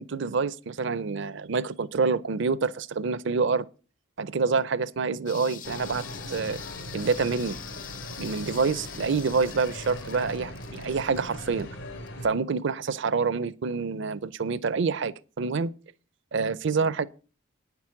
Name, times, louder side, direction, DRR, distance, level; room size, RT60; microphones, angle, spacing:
voice 1, 0.0-3.6 4.2-6.6 6.9-7.6 8.2-11.7 12.2-15.7 16.3-17.1, right 4 dB, 60° right, 0.5 m, -27 dB
sound 1, 5.3-12.3 12.6-12.7, left 9 dB, 40° left, 0.6 m, -44 dB
sound 2, 5.6-12.3, left 1 dB, 65° left, 3.2 m, -40 dB
9.5 x 6.0 x 8.5 m
head